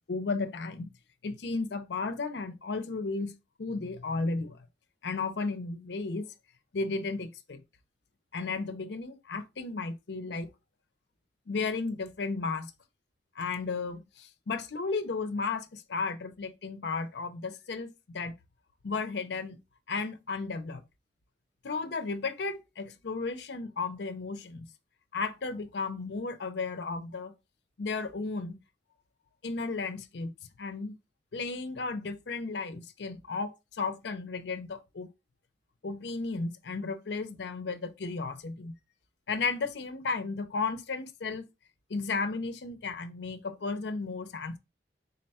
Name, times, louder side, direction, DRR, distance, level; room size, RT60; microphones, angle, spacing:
voice 1, 0.1-0.9 1.2-4.6 5.0-6.3 6.7-7.6 8.3-10.5 11.5-12.7 13.4-18.3 18.8-19.6 19.9-20.8 21.6-24.7 25.1-27.3 27.8-28.6 29.4-30.3 30.6-31.0 31.3-35.1 35.8-38.7 39.3-41.5 41.9-44.6, left 4 dB, 75° left, 0.5 m, -34 dB
3.9 x 2.2 x 4.1 m
head